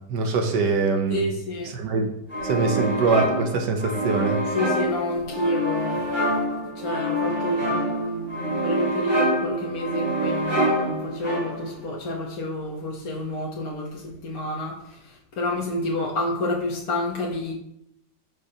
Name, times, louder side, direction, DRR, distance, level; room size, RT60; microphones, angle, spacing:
voice 1, 0.1-1.3 1.7-2.1 2.4-4.4, right 4 dB, 85° right, 5 dB, 1.5 m, -23 dB
voice 2, 1.1-1.7 4.5-6.3 6.7-17.5, left 1 dB, 60° left, -3 dB, 1.6 m, -29 dB
sound 1, 2.3-11.8, right 1 dB, 15° right, 3.5 m, -26 dB
14.5 x 5.4 x 2.9 m, 0.80 s
omnidirectional pair, 1.8 m